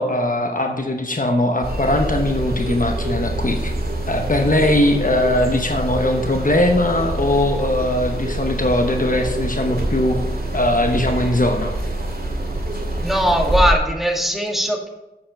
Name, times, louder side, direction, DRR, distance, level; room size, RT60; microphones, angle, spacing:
voice 1, 0.0-3.7 4.1-10.2 10.5-11.7, left 1 dB, 50° left, 4 dB, 0.9 m, -20 dB
sound 1, 1.6-13.7, right 1 dB, 65° right, 2.0 m, -25 dB
voice 2, 13.0-14.9, equal, ahead, 1 dB, 1.8 m, -20 dB
8.5 x 6.8 x 5.2 m, 0.98 s
wide cardioid pair, 50°, 17 cm